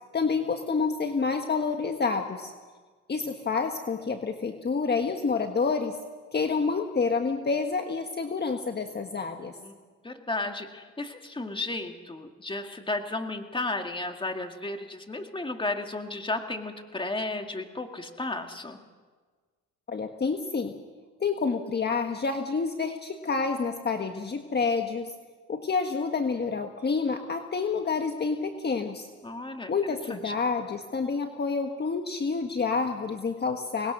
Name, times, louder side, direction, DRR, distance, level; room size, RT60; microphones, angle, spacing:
voice 1, 0.1-2.5 3.1-6.0 6.3-9.5 19.9-20.7 21.2-25.1 25.5-29.1 29.7-33.9, left 4 dB, 35° left, 5 dB, 1.5 m, -28 dB
voice 2, 10.0-18.8 29.2-29.7 30.1-30.3, left 2 dB, 15° left, 5 dB, 2.2 m, -33 dB
25.0 x 20.0 x 6.2 m, 1.4 s
cardioid pair, 90°, 30 cm